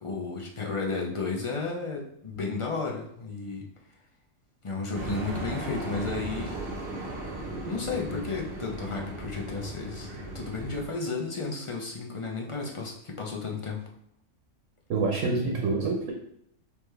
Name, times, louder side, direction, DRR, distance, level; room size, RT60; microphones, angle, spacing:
voice 1, 0.0-3.6 4.6-6.6 7.7-13.9, left 4 dB, 35° left, 0 dB, 0.5 m, -33 dB
sound 1, 4.9-10.9, right 2 dB, 55° right, 1.0 m, -36 dB
voice 2, 14.9-16.1, right 3 dB, 80° right, 0 dB, 1.1 m, -26 dB
4.7 x 3.5 x 3.2 m, 0.70 s
omnidirectional pair, 1.3 m